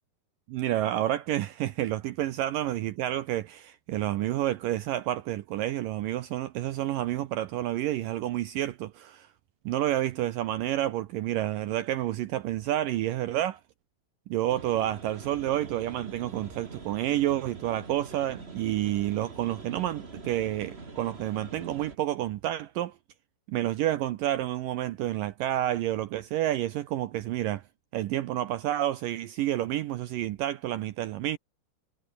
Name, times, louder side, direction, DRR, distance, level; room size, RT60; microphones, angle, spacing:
voice 1, 0.5-9.3 9.7-13.6 14.3-23.0 23.5-27.6 27.9-31.4, right 13 dB, 75° right, 2.1 m, -29 dB
sound 1, 14.5-22.0, right 3 dB, 20° right, 1.7 m, -44 dB
omnidirectional pair, 4.8 m